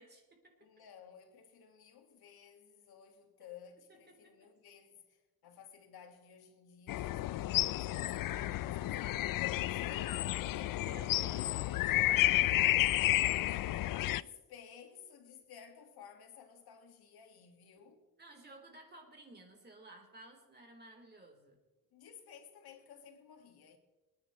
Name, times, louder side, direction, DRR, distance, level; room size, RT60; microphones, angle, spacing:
voice 1, 0.0-0.5 3.9-4.3 9.5-10.1 10.8-12.2 13.2-13.6 18.2-21.6, right 2 dB, 25° right, 3.6 m, -55 dB
voice 2, 0.6-9.3 9.6-10.9 12.6-18.1 21.9-23.8, left 7 dB, 90° left, 1.9 m, -55 dB
sound 1, 6.9-14.2, left 15 dB, 65° left, 0.5 m, -31 dB
26.5 x 9.8 x 3.1 m
cardioid pair, 115°, 36 cm